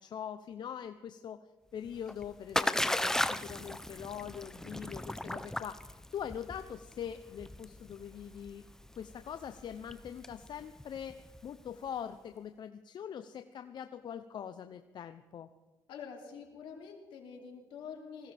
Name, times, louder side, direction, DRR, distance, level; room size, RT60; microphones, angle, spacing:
voice 1, 0.0-1.4 1.7-8.6 9.0-11.2 11.4-15.5, left 8 dB, 55° left, 9 dB, 0.6 m, -43 dB
Splash splatter, 1.8-11.7, left 1 dB, 5° left, 0.6 m, -37 dB
voice 2, 15.9-18.3, left 6 dB, 75° left, 1 dB, 2.8 m, -46 dB
20.0 x 16.0 x 3.4 m, 1.2 s
cardioid pair, 80°, 9 cm